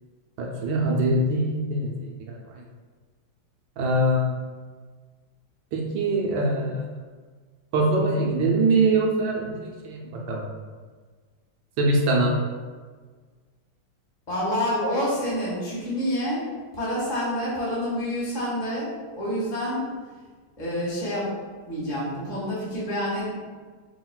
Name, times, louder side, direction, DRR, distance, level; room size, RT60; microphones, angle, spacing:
voice 1, 0.4-2.6 3.8-4.4 5.7-6.9 7.7-10.5 11.8-12.4, right 2 dB, 65° right, -1 dB, 1.4 m, -23 dB
voice 2, 14.3-16.4 16.7-19.9 20.6-21.3 21.7-23.3, equal, 25° left, -8 dB, 1.4 m, -28 dB
5.7 x 4.0 x 2.3 m, 1.5 s
omnidirectional pair, 2.4 m